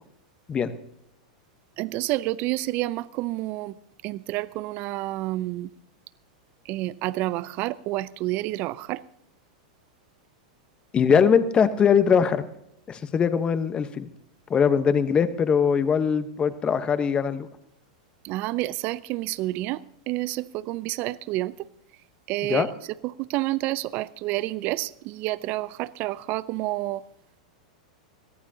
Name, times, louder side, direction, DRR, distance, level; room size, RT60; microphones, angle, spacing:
voice 1, 1.8-3.7 4.0-5.7 6.7-9.0 18.3-19.8 20.1-20.4 20.7-21.5 22.3-22.6 23.3-24.9 25.2-27.0, right 17 dB, 45° right, 0.6 m, -29 dB
voice 2, 10.9-12.4 12.9-14.1 14.5-17.5 22.5-22.7, left 7 dB, 25° left, 1.1 m, -21 dB
21.5 x 14.5 x 2.8 m
hypercardioid pair, 105°, 4 cm